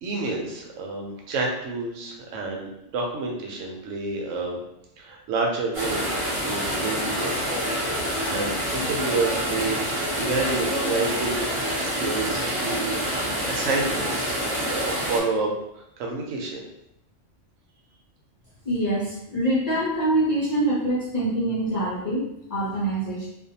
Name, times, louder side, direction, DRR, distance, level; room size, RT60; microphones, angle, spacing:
voice 1, 0.0-4.6 5.0-6.1 6.4-7.3 8.3-11.5 11.8-14.4 14.7-15.5 15.8-16.6, right 3 dB, 90° right, 0 dB, 1.0 m, -29 dB
sound 1, 5.7-15.2, equal, 35° right, 0.6 m, -27 dB
voice 2, 18.7-23.3, right 1 dB, 55° left, -7 dB, 0.4 m, -25 dB
2.5 x 2.1 x 2.7 m, 0.82 s
omnidirectional pair, 1.3 m